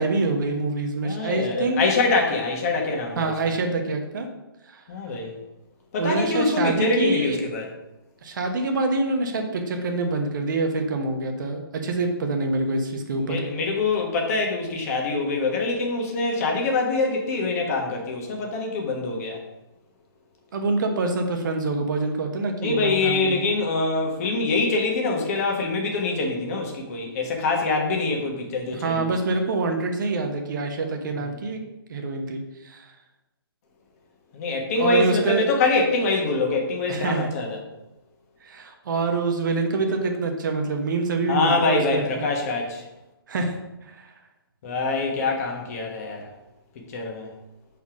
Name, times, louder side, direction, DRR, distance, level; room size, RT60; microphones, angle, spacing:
voice 1, 0.0-1.8 3.2-4.3 4.7-4.8 6.0-7.4 8.2-13.4 20.5-23.4 28.8-31.6 31.9-32.9 34.8-35.5 36.9-37.3 38.4-42.0 43.3-43.6 43.8-44.1, right 3 dB, 55° right, 4 dB, 1.1 m, -26 dB
voice 2, 1.0-3.5 4.9-5.3 5.9-7.7 13.3-19.4 22.6-29.1 34.3-37.6 41.3-42.8 44.6-46.3 46.9-47.3, left 3 dB, 40° left, 1 dB, 1.5 m, -24 dB
5.7 x 4.3 x 4.9 m, 0.96 s
hypercardioid pair, 140°, 13 cm